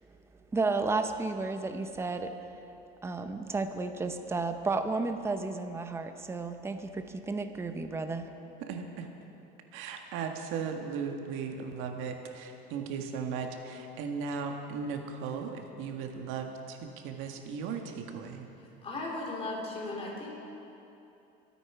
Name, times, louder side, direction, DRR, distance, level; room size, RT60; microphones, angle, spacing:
voice 1, 0.5-2.4 3.0-8.3, right 3 dB, 10° right, 7 dB, 0.7 m, -32 dB
voice 2, 8.7-9.1 9.7-18.5, right 5 dB, 75° right, 4 dB, 1.5 m, -37 dB
voice 3, 18.8-20.3, left 2 dB, 30° left, -3 dB, 3.1 m, -36 dB
23.0 x 9.1 x 4.8 m, 2.9 s
cardioid pair, 140°, 21 cm